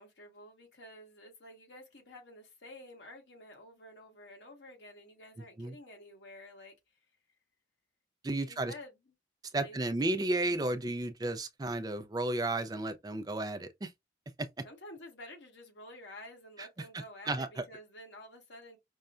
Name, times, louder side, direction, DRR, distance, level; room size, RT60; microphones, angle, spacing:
voice 1, 0.0-6.7 8.4-9.0 9.6-9.9 14.6-18.8, left 1 dB, 80° left, 1.5 m, -51 dB
voice 2, 8.2-8.7 9.5-13.9 14.4-14.5 17.2-17.6, right 2 dB, 20° right, 0.4 m, -33 dB
5.3 x 2.2 x 2.4 m
head